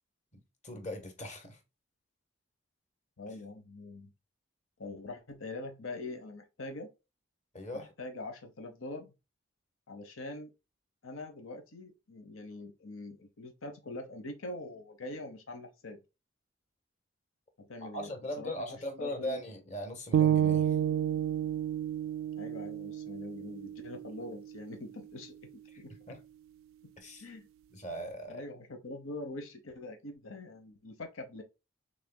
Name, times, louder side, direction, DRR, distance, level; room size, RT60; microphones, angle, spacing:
voice 1, 0.6-1.6 7.5-7.9 17.8-20.7 25.7-26.2 27.0-27.2 27.7-28.4, equal, 35° left, 1.3 m, -39 dB
voice 2, 3.2-4.1 4.8-6.9 7.7-9.1 9.9-10.5 11.0-16.0 17.6-19.4 22.4-25.3 25.8-25.9 26.8-26.9 27.2-27.5 28.3-31.4, left 2 dB, 85° left, 1.0 m, -43 dB
sound 1, 20.1-24.3, right 10 dB, 85° right, 0.3 m, -30 dB
6.5 x 3.4 x 2.2 m
head